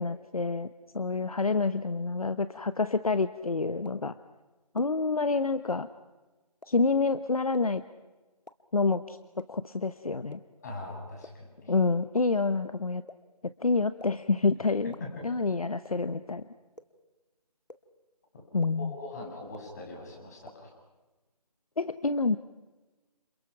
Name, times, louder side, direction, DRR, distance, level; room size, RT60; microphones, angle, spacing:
voice 1, 0.0-4.1 4.7-5.9 6.7-7.8 8.7-10.4 11.7-13.0 13.6-14.9 15.2-16.4 18.5-18.9 21.8-22.4, left 3 dB, 60° left, 12 dB, 1.1 m, -28 dB
sound 1, 3.8-3.9 4.8-4.9 5.7-5.8 6.6-6.7 7.5-7.6 8.5-8.6 9.4-9.5 10.3-10.4 11.2-11.3 12.1-12.2 13.1-13.2 14.0-14.1 14.9-15.0 15.8-15.9 16.8-16.9 17.7-17.8 18.6-18.7 19.5-19.6 20.5-20.6, left 2 dB, 90° left, 1.9 m, -46 dB
voice 2, 10.6-11.7 14.8-15.1 18.3-18.4 18.8-20.7, left 2 dB, 25° left, -1 dB, 7.2 m, -42 dB
29.5 x 27.5 x 5.9 m, 1.2 s
figure-of-eight pair, 165°, 21 cm